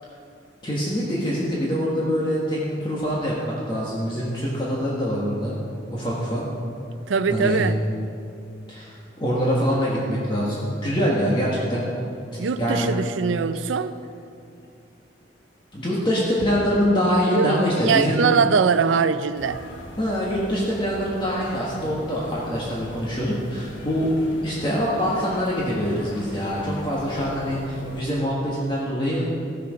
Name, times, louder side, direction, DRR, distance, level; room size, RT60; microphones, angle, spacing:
voice 1, 0.6-5.5 5.9-6.4 7.3-7.6 8.7-11.8 12.6-12.9 13.5-13.6 15.7-18.2 20.0-24.1 24.4-29.3, equal, 25° left, -6 dB, 1.5 m, -24 dB
voice 2, 7.1-7.8 12.4-13.9 17.3-19.6, right 5 dB, 90° right, 13 dB, 0.5 m, -22 dB
sound 1, 19.3-28.0, left 1 dB, 85° left, 1.2 m, -40 dB
15.5 x 6.8 x 5.1 m, 2.6 s
head